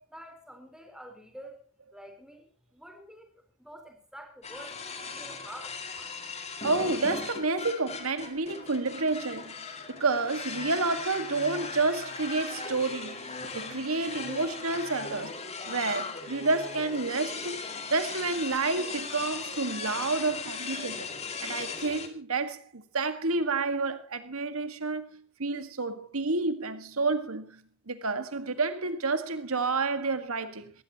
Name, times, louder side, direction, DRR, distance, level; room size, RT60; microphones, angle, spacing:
voice 1, 0.1-1.6 1.9-3.3 3.6-5.8, equal, 5° right, 4.2 m, -48 dB
sound 1, 4.4-22.1, left 4 dB, 30° left, 2.4 m, -38 dB
voice 2, 6.6-9.6 9.9-17.6 17.9-21.1 21.4-30.7, right 3 dB, 90° right, 1.9 m, -30 dB
20.5 x 16.0 x 3.0 m
head